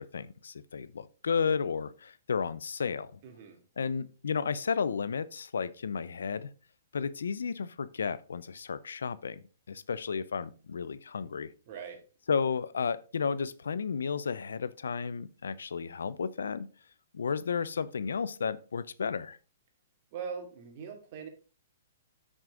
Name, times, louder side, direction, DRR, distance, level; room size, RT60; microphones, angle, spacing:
voice 1, 0.0-3.2 3.8-6.5 6.9-11.5 12.3-16.7 17.1-19.4, left 6 dB, 90° left, 0.6 m, -33 dB
voice 2, 3.2-3.6 11.7-12.0 20.1-21.3, right 6 dB, 45° right, 2.6 m, -41 dB
9.0 x 6.2 x 3.8 m
hypercardioid pair, 140°, 0 cm